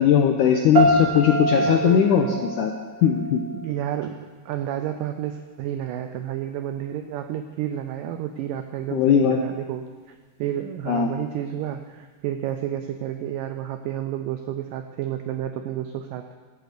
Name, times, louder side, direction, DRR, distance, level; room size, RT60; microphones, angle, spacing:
voice 1, 0.0-2.3 2.6-2.7 3.0-3.4 8.9-9.4 10.9-11.1, left 8 dB, 85° left, 3 dB, 1.8 m, -19 dB
sound 1, 0.7-3.7, right 2 dB, 60° right, 1.1 m, -25 dB
voice 2, 1.5-2.4 3.5-16.4, right 11 dB, 85° right, 8 dB, 1.9 m, -31 dB
12.5 x 8.1 x 6.6 m, 1.4 s
omnidirectional pair, 4.4 m